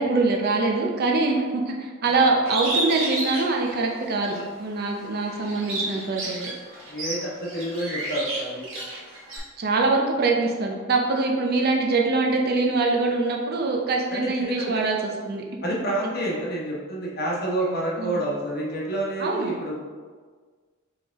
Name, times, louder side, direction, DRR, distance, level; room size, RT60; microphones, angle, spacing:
voice 1, 0.0-6.4 9.6-15.4 18.0-18.2 19.2-19.5, right 3 dB, 50° right, 0 dB, 0.6 m, -24 dB
Bird, 2.5-4.4 4.9-9.4, right 2 dB, 70° right, 1.3 m, -31 dB
voice 2, 6.9-8.6 14.1-14.8 15.6-19.7, right 1 dB, 50° left, -3 dB, 1.0 m, -28 dB
4.4 x 3.4 x 3.5 m, 1.5 s
head